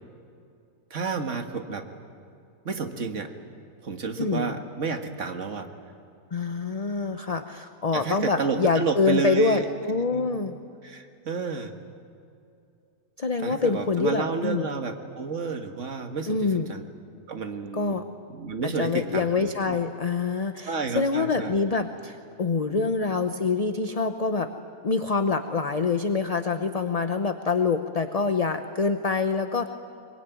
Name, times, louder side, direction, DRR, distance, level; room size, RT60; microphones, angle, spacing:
voice 1, 0.9-1.9 2.7-3.3 3.8-5.7 7.9-9.7 10.1-10.3 10.8-11.7 13.4-16.8 17.3-17.9 18.3-19.8 20.7-21.5 22.7-22.9, right 4 dB, 55° right, 6 dB, 1.9 m, -30 dB
voice 2, 4.2-4.6 6.3-10.6 13.2-14.7 16.3-16.7 17.7-18.0 18.6-24.5 24.8-29.7, left 4 dB, 35° left, 8 dB, 0.7 m, -26 dB
23.0 x 22.0 x 9.3 m, 2.6 s
omnidirectional pair, 1.6 m